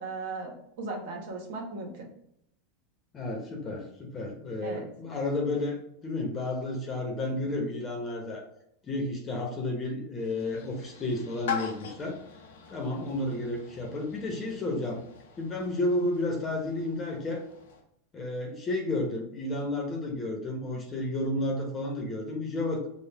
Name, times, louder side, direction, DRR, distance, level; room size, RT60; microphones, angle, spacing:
voice 1, 0.0-2.1 4.6-4.9, right 3 dB, 70° right, 1 dB, 1.3 m, -37 dB
voice 2, 3.1-8.4 8.8-12.2 12.7-15.0 15.4-17.4 18.1-22.8, left 2 dB, 25° left, 1 dB, 1.0 m, -32 dB
sound 1, 10.2-17.8, left 7 dB, 85° left, 0.8 m, -42 dB
4.8 x 2.4 x 3.4 m, 0.74 s
supercardioid pair, 120°, 0 cm